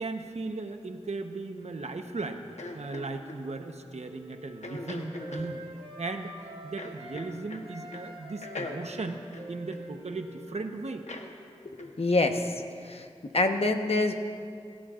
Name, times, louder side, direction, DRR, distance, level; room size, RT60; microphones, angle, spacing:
voice 1, 0.0-5.6 6.0-6.3 6.6-9.2 9.5-11.0, right 3 dB, 75° right, 5 dB, 1.0 m, -37 dB
sound 1, 2.6-3.4 4.6-5.5 6.8-7.7 7.9-8.1 8.4-10.2 11.1-11.3 11.8-12.0, left 2 dB, 85° left, 1.1 m, -41 dB
Wind instrument woodwind instrument, 2.8-7.3 7.6-12.1, right 1 dB, 50° right, 4.3 m, -47 dB
voice 2, 11.6-13.1 13.3-14.1, left 2 dB, 60° left, 5 dB, 1.2 m, -26 dB
24.0 x 14.0 x 2.5 m, 2.3 s
cardioid pair, 40°, 11 cm